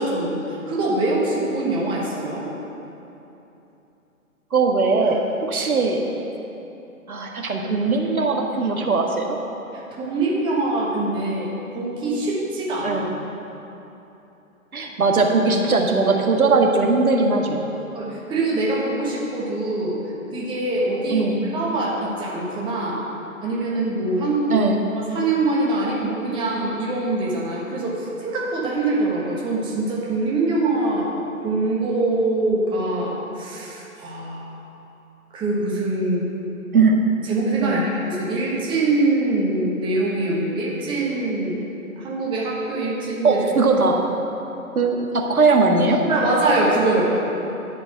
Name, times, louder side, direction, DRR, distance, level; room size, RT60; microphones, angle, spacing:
voice 1, 0.0-2.5 9.9-13.0 17.9-20.0 20.3-23.0 23.4-24.7 24.9-31.1 31.4-34.6 35.3-36.3 37.3-41.6 42.0-43.4 46.0-47.3, right 2 dB, 10° right, -5 dB, 1.3 m, -24 dB
voice 2, 4.5-6.0 7.1-9.4 12.8-13.1 14.7-17.6 21.1-21.4 24.5-24.8 36.7-37.0 37.6-37.9 43.2-44.0 44.7-46.0, right 3 dB, 85° right, 1 dB, 1.6 m, -19 dB
11.0 x 5.3 x 7.6 m, 3.0 s
figure-of-eight pair, 135°, 42 cm